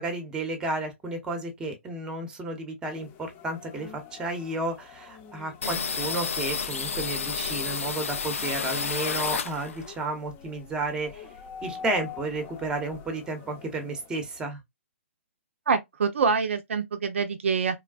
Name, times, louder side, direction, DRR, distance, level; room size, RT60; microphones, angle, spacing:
voice 1, 0.0-11.3 11.6-14.6, right 2 dB, 10° right, 0.8 m, -32 dB
sound 1, 2.9-14.4, left 7 dB, 30° left, 0.7 m, -47 dB
sound 2, 5.6-10.0 10.3-11.7 12.0-12.1 12.3-13.0, left 5 dB, 80° left, 0.5 m, -31 dB
voice 2, 15.7-17.8, right 5 dB, 70° right, 0.5 m, -26 dB
3.2 x 2.3 x 2.3 m
hypercardioid pair, 130°, 7 cm